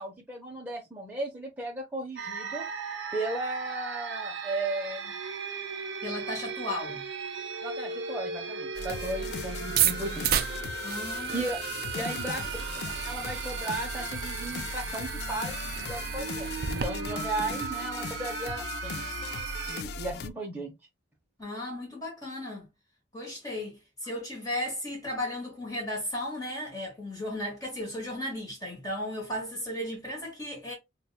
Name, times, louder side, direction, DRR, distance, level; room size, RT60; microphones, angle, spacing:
voice 1, 0.0-2.6 3.1-5.1 7.6-10.3 11.3-11.6 11.9-12.4 12.7-19.0 19.7-20.7, right 2 dB, 10° right, 0.6 m, -35 dB
sound 1, 2.2-19.8, right 5 dB, 85° right, 0.7 m, -37 dB
voice 2, 6.0-7.0 10.8-11.5 12.0-12.2 21.4-22.7 23.1-30.7, left 1 dB, 20° left, 1.2 m, -35 dB
sound 2, 8.8-20.3, left 4 dB, 55° left, 0.3 m, -38 dB
sound 3, 9.8-16.9, right 10 dB, 55° right, 0.3 m, -33 dB
5.2 x 2.3 x 2.3 m
head